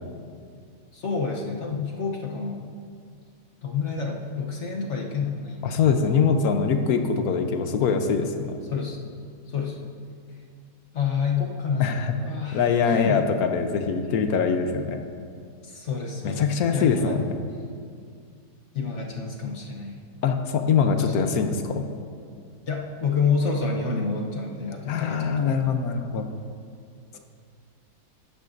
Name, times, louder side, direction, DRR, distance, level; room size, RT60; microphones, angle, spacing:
voice 1, 0.9-2.7 3.6-5.8 8.7-9.0 9.5-9.8 10.9-13.2 15.6-17.2 18.7-20.0 21.0-21.3 22.7-25.7 27.1-27.2, left 5 dB, 55° left, 0 dB, 1.1 m, -29 dB
voice 2, 5.6-8.6 11.8-12.1 12.5-15.0 16.2-17.2 20.2-21.9 24.9-26.2, left 6 dB, 70° left, 6 dB, 1.2 m, -23 dB
14.5 x 11.0 x 2.6 m, 2.3 s
omnidirectional pair, 1.7 m